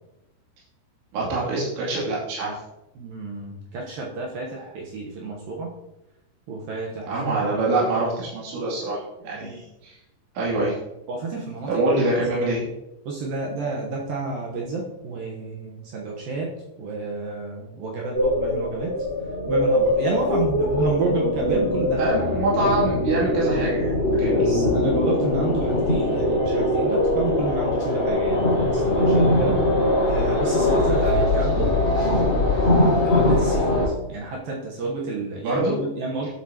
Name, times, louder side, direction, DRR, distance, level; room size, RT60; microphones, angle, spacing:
voice 1, 1.1-2.5 7.1-10.0 10.4-10.8 11.7-12.6 22.0-24.4 35.4-35.8 36.2-36.3, right 2 dB, 85° right, -6 dB, 5.1 m, -25 dB
voice 2, 3.0-5.7 6.5-7.1 9.4-9.6 11.1-11.7 13.1-16.5 16.8-19.0 19.5-22.0 24.3-29.6 30.1-31.7 32.6-32.7 33.0-33.8 34.1-36.3, right 3 dB, 70° right, -2 dB, 2.4 m, -30 dB
sound 1, 18.1-33.9, left 1 dB, 25° left, 4.4 m, -21 dB
12.5 x 8.1 x 2.9 m, 0.92 s
omnidirectional pair, 5.1 m